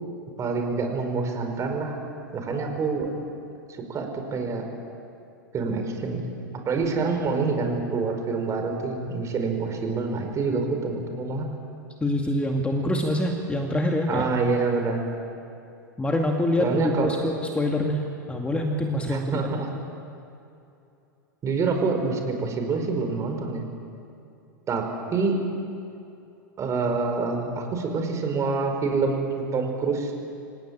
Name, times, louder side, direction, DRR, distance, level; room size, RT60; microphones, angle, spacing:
voice 1, 0.4-2.0 2.3-3.1 3.9-4.7 5.5-6.2 6.7-11.5 14.1-15.1 16.6-17.1 19.1-19.7 21.4-23.7 24.7-24.8 25.1-25.4 26.6-30.1, right 4 dB, 30° right, 4 dB, 5.1 m, -26 dB
voice 2, 12.0-14.2 16.0-18.0 18.3-19.4, left 1 dB, 10° left, 2 dB, 2.2 m, -25 dB
26.5 x 18.5 x 8.8 m, 2.7 s
hypercardioid pair, 100°, 11 cm